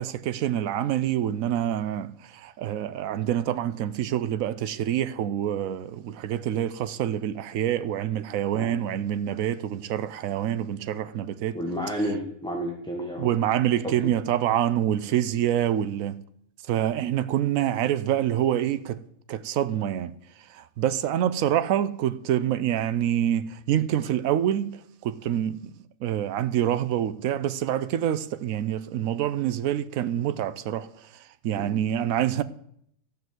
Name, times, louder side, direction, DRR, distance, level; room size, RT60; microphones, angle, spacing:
voice 1, 0.0-11.6 13.2-16.2 16.7-19.0 19.3-20.1 20.5-25.7 26.0-31.1 31.4-32.4, right 11 dB, 90° right, 1.1 m, -26 dB
voice 2, 11.5-13.4 13.8-14.1 31.6-31.7, equal, 5° left, 1.3 m, -31 dB
13.5 x 5.4 x 7.8 m
omnidirectional pair, 1.4 m